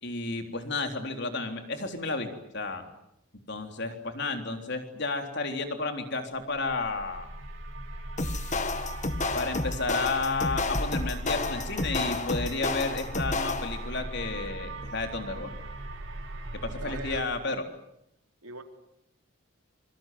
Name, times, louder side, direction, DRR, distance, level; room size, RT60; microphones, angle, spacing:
voice 1, 0.0-2.9 3.5-7.3 9.3-15.5 16.5-17.7, left 3 dB, 50° left, 5 dB, 3.7 m, -32 dB
sound 1, 6.5-17.2, right 1 dB, 60° right, 3.6 m, -39 dB
sound 2, 8.2-13.9, left 2 dB, 35° left, 1.7 m, -31 dB
voice 2, 16.7-17.5 18.4-18.6, right 3 dB, 85° right, 5 dB, 4.0 m, -42 dB
26.0 x 23.5 x 9.4 m, 0.79 s
head